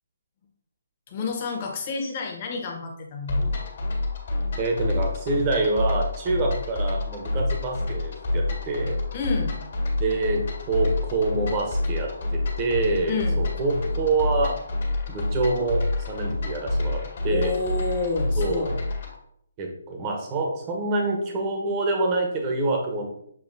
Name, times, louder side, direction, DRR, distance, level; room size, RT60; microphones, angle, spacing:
voice 1, 1.1-3.5 9.1-9.5 13.1-13.4 17.3-18.7, left 4 dB, 35° left, 1 dB, 1.2 m, -29 dB
sound 1, 3.3-19.2, left 2 dB, 60° left, 1.7 m, -28 dB
voice 2, 4.6-9.0 10.0-10.4 10.7-14.6 15.1-17.5 18.4-18.8 19.6-23.1, right 2 dB, 25° right, 1 dB, 1.0 m, -26 dB
7.0 x 2.7 x 2.7 m, 0.70 s
figure-of-eight pair, 150°, 0 cm